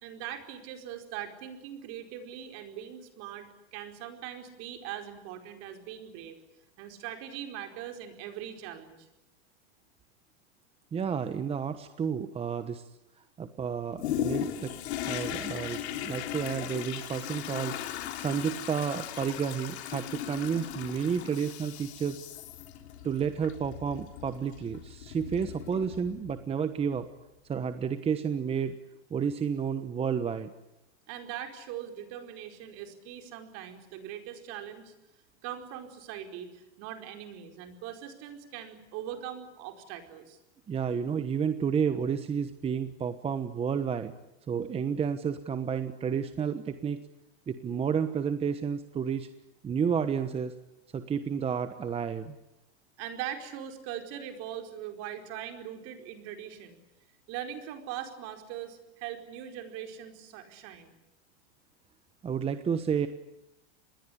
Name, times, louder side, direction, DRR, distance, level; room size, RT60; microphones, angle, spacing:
voice 1, 0.0-6.4 6.8-9.1 31.1-34.9 35.4-40.4 53.0-56.8 57.3-60.9, right 10 dB, 45° right, 6 dB, 4.7 m, -41 dB
voice 2, 10.9-12.8 13.4-14.7 15.0-17.7 18.2-22.2 23.0-27.1 27.5-28.7 29.1-30.5 40.7-44.1 44.5-47.0 47.5-49.3 49.6-50.5 50.9-52.3 62.2-63.1, right 7 dB, 15° right, 10 dB, 1.2 m, -31 dB
Toilet flush, 14.0-26.4 26.9-27.0, left 11 dB, 70° left, 3.7 m, -37 dB
27.0 x 21.0 x 9.8 m, 0.89 s
supercardioid pair, 135°, 33 cm